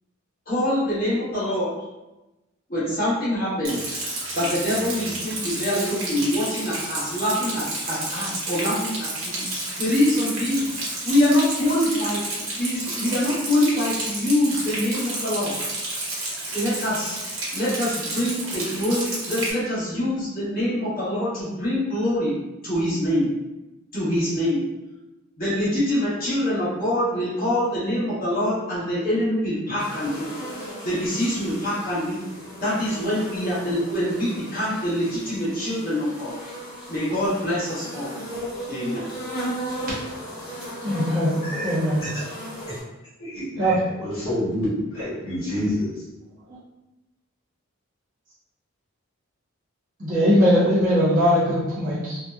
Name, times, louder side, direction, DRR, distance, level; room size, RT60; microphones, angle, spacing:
voice 1, 0.5-1.7 2.7-4.0 4.3-9.5 9.8-10.7 11.0-15.5 16.5-17.2 17.5-22.3 22.6-23.3 23.9-24.6 25.4-30.3 30.8-32.3 32.6-36.3 36.9-38.1 38.7-39.1, left 1 dB, 45° left, -10 dB, 1.0 m, -24 dB
Rain, 3.6-19.5, right 2 dB, 80° right, 0.9 m, -31 dB
sound 1, 29.8-42.8, right 1 dB, 25° left, 1.3 m, -36 dB
voice 2, 40.8-42.1 43.6-43.8 50.0-52.2, equal, 40° right, -9 dB, 0.7 m, -20 dB
voice 3, 41.4-41.7 42.0-42.2 43.2-45.9, equal, 80° left, -9 dB, 1.2 m, -28 dB
2.7 x 2.1 x 2.3 m, 1.0 s
head